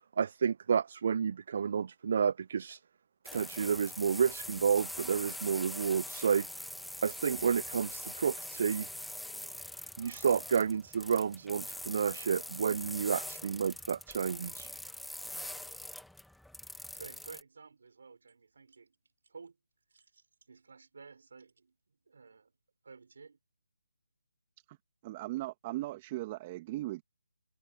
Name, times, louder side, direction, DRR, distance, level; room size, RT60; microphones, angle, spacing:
voice 1, 0.2-2.8 3.3-6.6 7.0-8.9 10.0-14.7, right 6 dB, 50° right, 0.3 m, -30 dB
sound 1, 3.2-17.4, left 1 dB, ahead, 1.6 m, -43 dB
voice 2, 16.9-19.0 19.3-19.6 19.9-21.8 22.1-22.5 22.8-23.4, right 5 dB, 65° right, 5.9 m, -53 dB
voice 3, 25.0-27.0, right 17 dB, 25° right, 1.8 m, -38 dB
open air
figure-of-eight pair, 155°, 0 cm